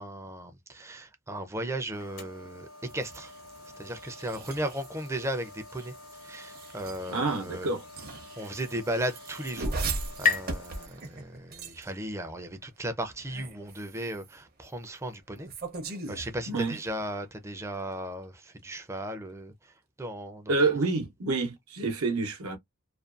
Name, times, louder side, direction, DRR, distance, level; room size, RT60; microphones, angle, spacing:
voice 1, 0.0-2.7 2.9-3.3 3.8-5.9 6.2-7.7 8.4-9.8 10.2-15.5 15.8-19.7 20.0-20.5, right 1 dB, 15° right, 0.4 m, -36 dB
sound 1, 1.9-10.9, left 2 dB, 80° left, 1.0 m, -49 dB
sound 2, 2.9-12.1 13.1-14.4 15.4-17.0, right 3 dB, 45° right, 0.7 m, -40 dB
voice 2, 7.1-7.8 16.5-16.8 20.5-22.6, right 3 dB, 85° right, 0.8 m, -28 dB
sound 3, 8.8-12.2, left 6 dB, 40° left, 0.5 m, -34 dB
2.5 x 2.2 x 2.4 m
head